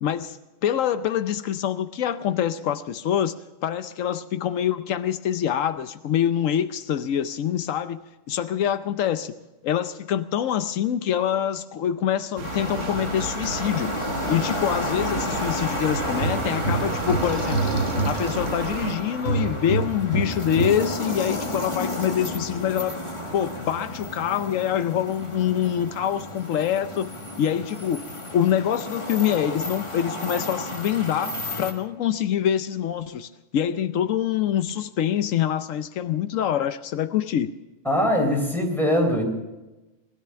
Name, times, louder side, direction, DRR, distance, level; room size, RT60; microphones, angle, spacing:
voice 1, 0.0-0.4 0.6-3.4 3.6-9.3 9.6-13.9 14.3-17.7 18.0-23.0 23.3-27.1 27.4-37.5, left 10 dB, 85° left, 1.1 m, -25 dB
sound 1, 12.4-31.7, left 2 dB, 25° left, 1.7 m, -32 dB
sound 2, 12.4-18.9, right 6 dB, 70° right, 1.3 m, -33 dB
sound 3, 15.9-19.0 19.2-20.9, right 2 dB, 50° left, 6.8 m, -27 dB
voice 2, 37.9-39.3, equal, ahead, 3.9 m, -22 dB
19.5 x 12.5 x 5.7 m
omnidirectional pair, 1.3 m